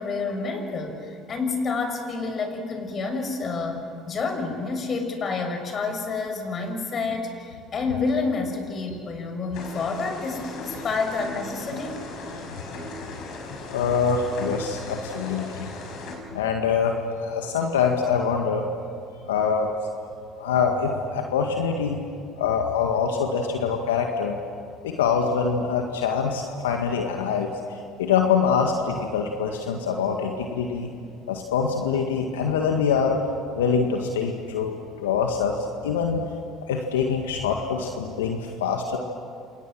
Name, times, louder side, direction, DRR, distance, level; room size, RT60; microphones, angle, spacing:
voice 1, 0.0-12.1, left 4 dB, 45° left, 5 dB, 6.2 m, -29 dB
sound 1, 9.5-16.2, left 3 dB, 60° left, 6.5 m, -37 dB
voice 2, 13.7-15.7 16.3-18.6 19.2-19.7 20.4-22.0 22.4-24.4 24.8-27.5 28.0-30.9 31.3-33.2 33.5-36.2 36.7-39.0, left 6 dB, 85° left, 3 dB, 1.9 m, -24 dB
29.0 x 28.0 x 6.3 m, 2.3 s
hypercardioid pair, 65°, 0 cm